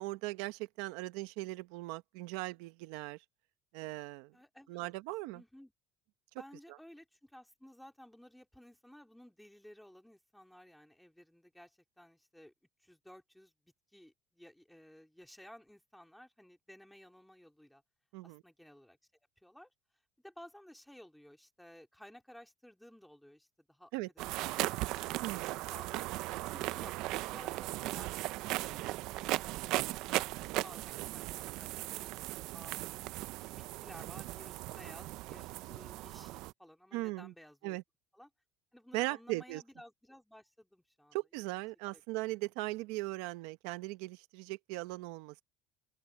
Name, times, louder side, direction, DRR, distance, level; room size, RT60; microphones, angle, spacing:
voice 1, 0.0-3.2 3.7-4.3 4.7-5.4 18.1-18.4 23.9-24.1 25.2-25.6 36.9-37.3 37.6-37.8 38.9-39.6 41.1-45.4, right 20 dB, 80° right, 0.9 m, -39 dB
voice 2, 4.3-4.9 5.3-5.7 6.3-12.5 12.8-17.8 18.2-19.0 19.4-19.7 20.2-25.0 25.4-26.1 26.5-28.1 28.5-29.4 29.6-32.1 32.5-32.9 33.6-37.8 38.1-38.3 38.7-41.2 41.9-42.0, left 1 dB, ahead, 2.5 m, -56 dB
sound 1, 24.2-36.5, right 18 dB, 65° right, 0.5 m, -37 dB
open air
cardioid pair, 145°, 0 cm